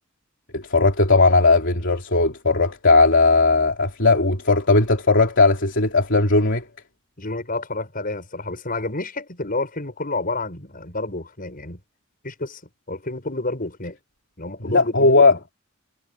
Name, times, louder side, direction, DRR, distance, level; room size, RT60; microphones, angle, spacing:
voice 1, 0.5-6.7 14.6-15.3, left 3 dB, 65° left, 3.1 m, -17 dB
voice 2, 7.2-11.8 12.2-12.6 12.9-14.0 14.4-15.4, left 2 dB, 45° left, 7.3 m, -29 dB
head